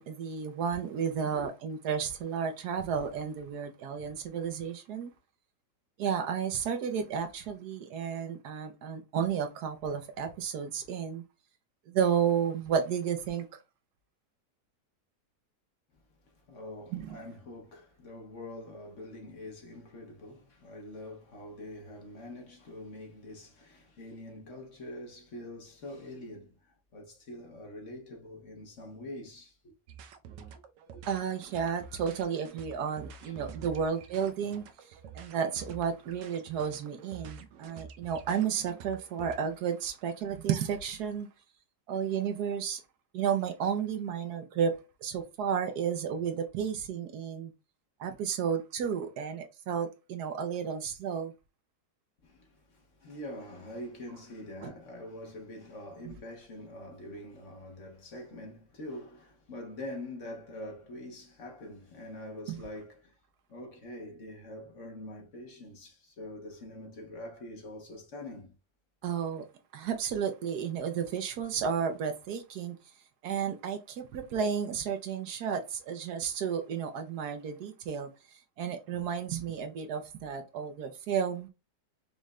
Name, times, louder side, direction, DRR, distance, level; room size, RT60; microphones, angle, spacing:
voice 1, 0.0-5.1 6.0-11.2 11.9-13.6 16.9-17.2 31.1-34.6 35.1-41.3 41.9-42.8 43.1-44.7 45.0-47.5 48.0-51.3 54.6-54.7 56.0-56.1 62.5-62.6 69.0-69.5 69.7-72.8 73.2-81.5, right 7 dB, 70° right, 1.2 m, -32 dB
voice 2, 16.3-29.7 30.3-30.4 30.9-31.1 33.2-33.8 52.2-63.1 63.5-68.5, left 1 dB, 50° left, 1.2 m, -45 dB
sound 1, 29.9-39.3, right 6 dB, 90° right, 1.3 m, -48 dB
5.3 x 3.1 x 2.4 m
omnidirectional pair, 1.8 m